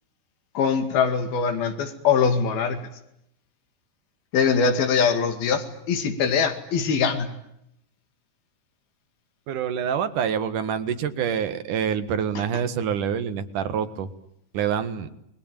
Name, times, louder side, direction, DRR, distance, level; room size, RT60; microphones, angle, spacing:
voice 1, 0.6-2.8 4.3-7.3, left 6 dB, 90° left, 7 dB, 4.1 m, -22 dB
voice 2, 9.5-14.1 14.5-15.1, right 8 dB, 65° right, 11 dB, 2.9 m, -26 dB
29.5 x 21.5 x 9.1 m, 0.78 s
omnidirectional pair, 4.1 m